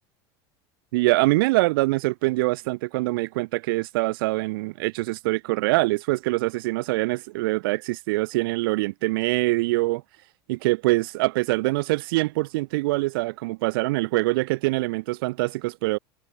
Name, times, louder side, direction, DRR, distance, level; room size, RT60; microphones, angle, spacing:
voice 1, 0.9-10.0 10.5-16.0, right 22 dB, 75° right, 6.2 m, -24 dB
supercardioid pair, 105°, 12 cm